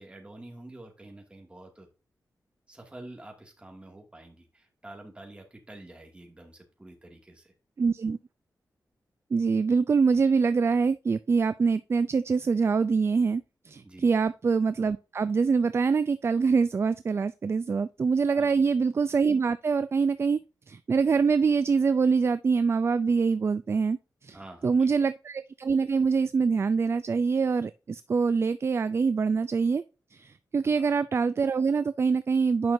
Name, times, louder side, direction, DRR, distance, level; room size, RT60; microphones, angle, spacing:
voice 1, 0.0-1.9 2.7-7.5 13.8-14.1 18.3-18.6 24.3-25.1 30.6-30.9, right 1 dB, 15° right, 2.2 m, -48 dB
voice 2, 7.8-8.2 9.3-20.4 20.7-24.4 24.6-29.8 30.1-32.7, right 5 dB, 40° right, 0.3 m, -25 dB
9.3 x 6.0 x 2.7 m
wide cardioid pair, 110°, 7 cm